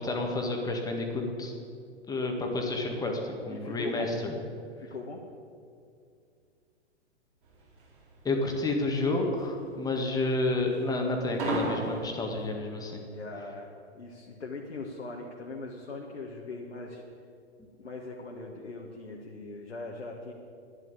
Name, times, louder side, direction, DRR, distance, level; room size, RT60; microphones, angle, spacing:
voice 1, 0.0-1.5 2.1-4.4 8.2-13.0, left 2 dB, 10° left, 2 dB, 1.9 m, -30 dB
voice 2, 3.5-4.1 4.8-5.2 13.1-13.7 14.0-17.0 17.8-20.3, left 3 dB, 75° left, -1 dB, 1.7 m, -40 dB
sound 1, 7.5-12.5, right 1 dB, 35° right, 4.3 m, -35 dB
11.5 x 11.0 x 8.4 m, 2.3 s
figure-of-eight pair, 110°, 34 cm